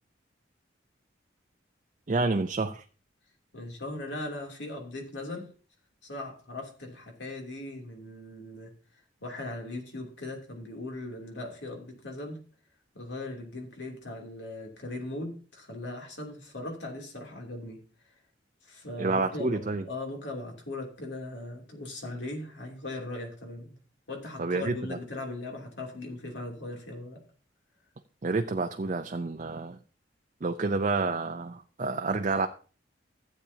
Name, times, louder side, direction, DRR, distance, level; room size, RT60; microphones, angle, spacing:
voice 1, 2.1-2.8 19.0-19.8 24.4-25.0 28.2-29.8 30.4-32.5, right 3 dB, 40° right, 6 dB, 0.5 m, -29 dB
voice 2, 3.5-5.5 6.0-8.7 9.2-12.4 12.9-17.8 18.6-19.6 19.9-23.8 24.1-27.2, left 2 dB, 80° left, 1 dB, 2.9 m, -39 dB
15.0 x 8.4 x 2.8 m, 0.38 s
head